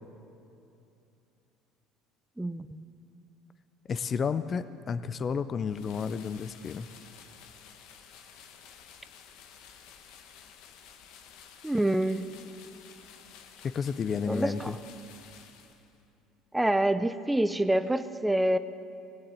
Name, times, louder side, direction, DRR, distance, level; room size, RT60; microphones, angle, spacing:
voice 1, 2.4-2.9 11.6-12.3 14.2-14.8 16.5-18.6, right 1 dB, 5° right, 11 dB, 0.5 m, -27 dB
voice 2, 3.9-6.9 13.6-14.7, left 6 dB, 40° left, 13 dB, 0.5 m, -31 dB
sound 1, 5.6-16.1, left 7 dB, 75° left, 1.1 m, -52 dB
17.5 x 7.9 x 8.5 m, 2.7 s
supercardioid pair, 90°, 0 cm